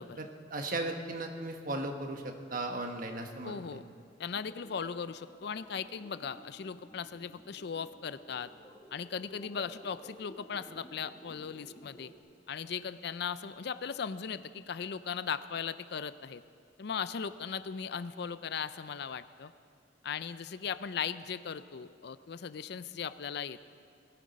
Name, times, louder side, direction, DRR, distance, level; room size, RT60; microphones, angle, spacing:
voice 1, 0.2-3.6, right 2 dB, 45° right, 4 dB, 1.3 m, -36 dB
voice 2, 3.4-3.8 4.2-8.5 8.9-12.1 12.5-16.4 16.8-19.5 20.0-23.6, left 6 dB, 60° left, 14 dB, 0.5 m, -38 dB
sound 1, 4.3-12.2, equal, 20° left, 1.4 m, -54 dB
20.5 x 13.5 x 5.2 m, 2.3 s
head